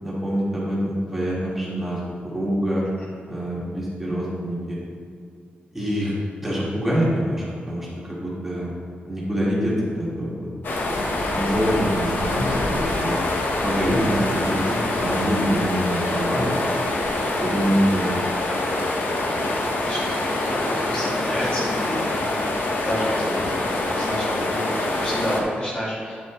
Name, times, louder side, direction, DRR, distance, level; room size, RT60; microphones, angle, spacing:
voice 1, 0.0-2.9 3.3-4.8 5.7-6.1 6.4-8.7 9.1-10.5 10.9-11.0 11.3-13.2 13.6-16.6 17.4-18.2, equal, 10° right, -7 dB, 1.8 m, -25 dB
sound 1, 10.6-25.4, left 2 dB, 65° left, 1.1 m, -25 dB
voice 2, 17.2-17.6 19.7-22.4 22.8-26.2, equal, 30° left, -6 dB, 1.9 m, -30 dB
9.0 x 7.6 x 3.1 m, 2.2 s
wide cardioid pair, 150°, 4 cm